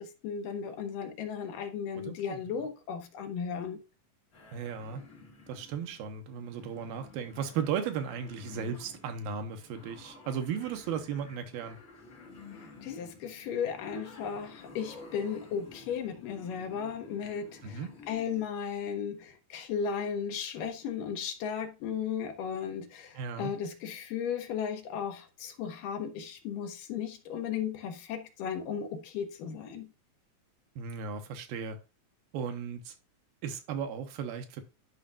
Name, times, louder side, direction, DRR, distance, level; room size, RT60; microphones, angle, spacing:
voice 1, 0.0-3.8 12.6-17.8 18.1-29.9, left 7 dB, 75° left, 2.5 m, -35 dB
voice 2, 2.0-2.6 4.5-5.0 5.5-11.8 17.6-18.0 23.1-23.5 30.8-31.8 32.3-32.9 33.4-34.6, right 7 dB, 90° right, 2.7 m, -36 dB
sound 1, 4.3-18.4, left 3 dB, 40° left, 2.5 m, -52 dB
11.5 x 5.2 x 2.4 m
omnidirectional pair, 4.1 m